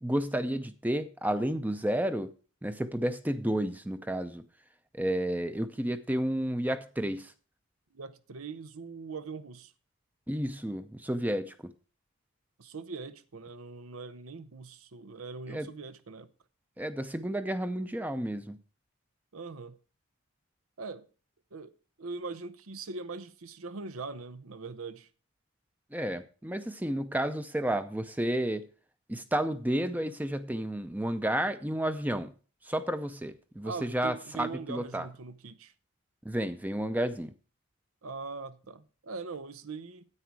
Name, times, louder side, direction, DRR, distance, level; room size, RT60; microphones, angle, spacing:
voice 1, 0.0-2.3 2.6-4.4 4.9-7.3 10.3-11.7 15.5-15.7 16.8-18.6 25.9-28.7 29.1-32.3 32.6-35.1 36.2-37.3, right 1 dB, 10° right, 0.5 m, -31 dB
voice 2, 7.9-9.7 12.6-16.3 19.3-19.8 20.8-21.1 21.5-25.1 33.6-35.7 38.0-40.0, right 4 dB, 90° right, 0.8 m, -41 dB
9.9 x 8.4 x 4.7 m
head